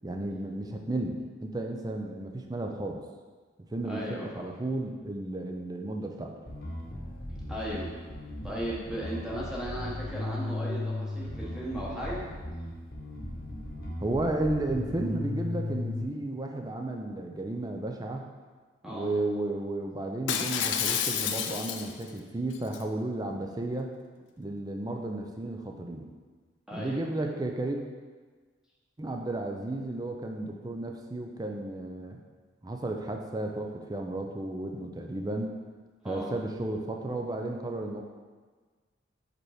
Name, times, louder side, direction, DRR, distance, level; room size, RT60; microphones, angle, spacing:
voice 1, 0.0-3.0 3.7-6.3 14.0-18.3 18.8-23.9 24.4-26.1 26.7-27.8 29.0-32.2 32.6-35.5 36.0-38.0, right 2 dB, 20° right, 3 dB, 0.4 m, -33 dB
voice 2, 3.8-4.5 7.5-7.9 8.4-12.2 18.8-19.1 26.7-27.0 36.0-36.3, equal, 5° right, -6 dB, 1.0 m, -36 dB
Bass guitar, 6.5-16.1, left 2 dB, 55° left, 1.1 m, -36 dB
Shatter, 20.3-22.1 22.5-22.8, left 8 dB, 80° left, 0.5 m, -29 dB
5.0 x 4.5 x 4.8 m, 1.4 s
head